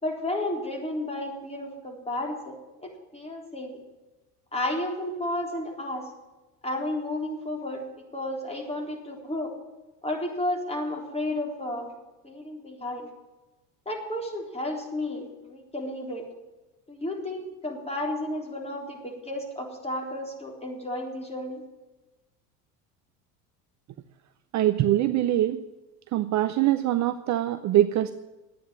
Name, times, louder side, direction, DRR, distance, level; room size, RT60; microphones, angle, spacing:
voice 1, 0.0-3.8 4.5-6.1 6.6-9.6 10.0-11.9 12.2-13.1 13.9-16.3 16.9-21.6, left 1 dB, 15° left, 0 dB, 3.9 m, -32 dB
voice 2, 24.5-25.6 26.1-28.1, right 13 dB, 40° right, 11 dB, 0.7 m, -23 dB
11.0 x 9.3 x 9.1 m, 1.1 s
hypercardioid pair, 75°, 46 cm